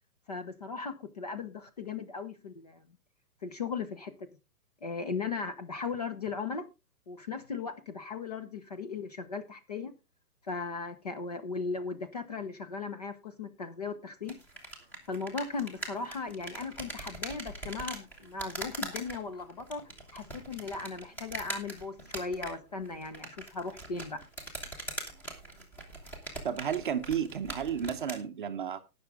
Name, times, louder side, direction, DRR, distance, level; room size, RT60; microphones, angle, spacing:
voice 1, 0.3-2.8 3.4-4.1 4.8-6.7 7.1-9.9 10.4-14.4 15.1-24.2, left 4 dB, 25° left, 0.6 m, -37 dB
sound 1, 14.2-28.2, right 2 dB, 5° left, 1.1 m, -42 dB
voice 2, 26.4-28.8, right 8 dB, 35° right, 0.7 m, -32 dB
18.0 x 6.1 x 3.5 m
hypercardioid pair, 160°, 47 cm